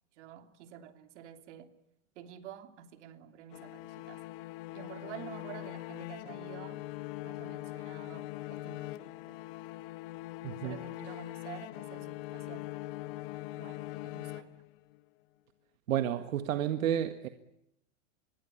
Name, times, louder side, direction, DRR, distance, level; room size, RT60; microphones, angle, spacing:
voice 1, 0.2-1.7 2.1-4.2 4.7-6.8 7.2-9.4 10.6-12.7 13.6-14.6, right 10 dB, 60° right, 3.1 m, -49 dB
sound 1, 3.5-15.0, left 17 dB, 45° left, 1.2 m, -42 dB
voice 2, 10.4-10.8 15.9-17.3, right 10 dB, 80° right, 1.9 m, -31 dB
26.0 x 23.0 x 9.9 m
supercardioid pair, 155°, 40 cm